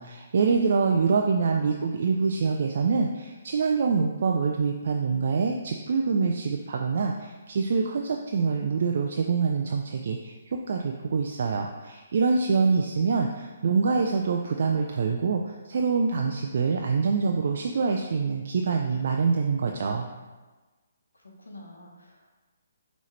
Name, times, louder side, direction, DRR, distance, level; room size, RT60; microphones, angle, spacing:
voice 1, 0.0-10.3 10.7-20.1, right 5 dB, 55° right, 2 dB, 0.3 m, -25 dB
voice 2, 21.1-22.3, left 1 dB, 80° left, -1 dB, 1.0 m, -48 dB
5.4 x 3.0 x 3.2 m, 1.3 s
figure-of-eight pair, 135°, 0 cm